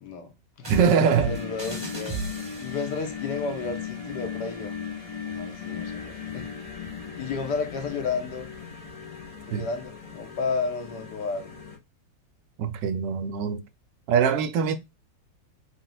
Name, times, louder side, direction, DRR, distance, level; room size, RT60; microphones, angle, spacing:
voice 1, 0.0-0.7 1.3-2.2 2.6-4.7 5.3-6.5 7.2-8.5 9.5-11.5, left 4 dB, 70° left, 1.4 m, -32 dB
sound 1, 0.6-3.0, right 4 dB, 15° right, 1.3 m, -34 dB
sound 2, 0.7-11.8, left 6 dB, 40° left, 0.5 m, -37 dB
voice 2, 0.7-1.3 9.5-9.6 12.6-13.6 14.1-14.7, right 6 dB, 80° right, 1.2 m, -23 dB
3.9 x 2.3 x 3.8 m
omnidirectional pair, 1.9 m